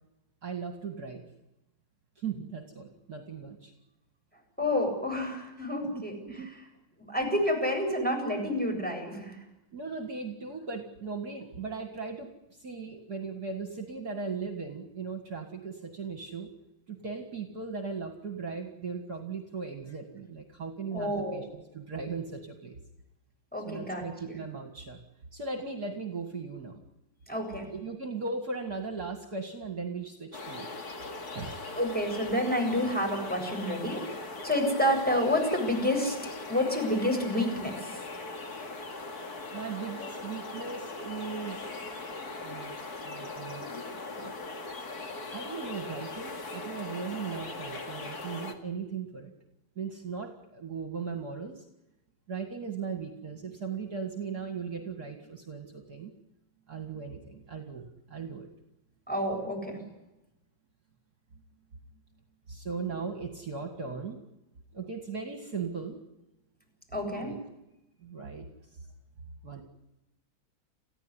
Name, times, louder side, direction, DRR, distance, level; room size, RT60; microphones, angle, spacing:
voice 1, 0.4-1.2 2.2-3.7 5.9-6.5 9.7-16.5 16.9-22.7 23.7-25.0 25.3-26.8 27.7-30.7 31.3-31.6 39.5-41.7 42.4-42.8 43.0-43.7 43.9-44.3 45.3-49.3 49.8-51.7 52.3-56.1 56.7-58.5 62.5-64.2 64.7-66.0 67.2-67.4 68.0-68.5 69.4-69.6, right 5 dB, 50° right, 5 dB, 2.5 m, -38 dB
voice 2, 4.6-6.1 7.0-9.4 20.9-21.5 23.5-24.4 27.3-27.7 31.8-36.2 36.5-37.9 59.1-59.8 66.9-67.3, left 1 dB, 5° left, 1 dB, 7.7 m, -29 dB
sound 1, 30.3-48.6, left 3 dB, 50° left, 2.7 m, -40 dB
28.5 x 16.0 x 9.8 m, 0.94 s
omnidirectional pair, 2.2 m